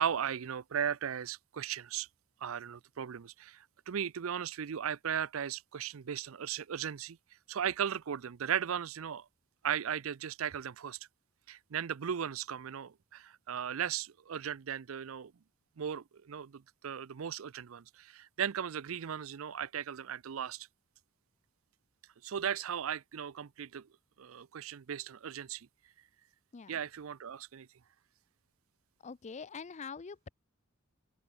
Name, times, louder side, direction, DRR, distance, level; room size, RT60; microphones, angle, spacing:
voice 1, 0.0-2.1 2.4-7.2 7.5-9.3 9.6-11.0 11.5-15.3 15.8-20.7 22.2-23.9 24.2-25.7 26.7-27.7, right 8 dB, 70° right, 0.5 m, -37 dB
voice 2, 29.0-30.3, left 5 dB, 35° left, 0.5 m, -44 dB
open air
head